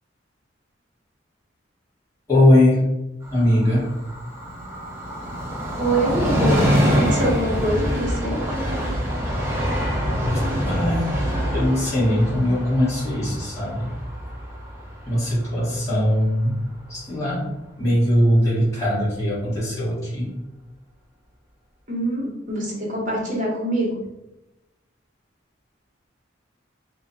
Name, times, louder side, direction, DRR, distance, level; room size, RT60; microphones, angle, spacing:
voice 1, 2.3-2.9 3.3-3.9 10.7-11.0 11.5-13.9 15.0-16.6 16.9-17.5 17.8-20.3, left 1 dB, 15° left, -11 dB, 1.5 m, -20 dB
Train, 3.2-16.5 16.9-17.0, equal, 10° right, 0.6 m, -25 dB
voice 2, 5.8-6.7 6.9-8.4 21.9-24.0, right 1 dB, 40° right, -3 dB, 1.1 m, -24 dB
3.0 x 2.4 x 3.9 m, 0.95 s
head